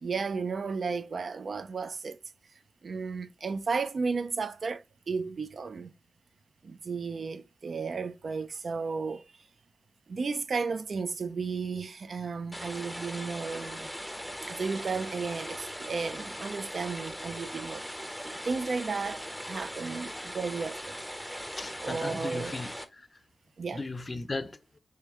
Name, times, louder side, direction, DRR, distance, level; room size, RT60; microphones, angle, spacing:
voice 1, 0.0-2.2 2.8-5.9 6.6-9.2 10.1-13.9 14.5-17.8 18.4-20.9 21.8-22.6 23.6-23.8, right 4 dB, 65° right, 0.4 m, -33 dB
sound 1, 12.5-22.8, equal, ahead, 0.6 m, -40 dB
voice 2, 21.6-23.2 23.7-24.8, left 3 dB, 40° left, 0.4 m, -37 dB
3.2 x 2.9 x 3.4 m
cardioid pair, 55°, 0 cm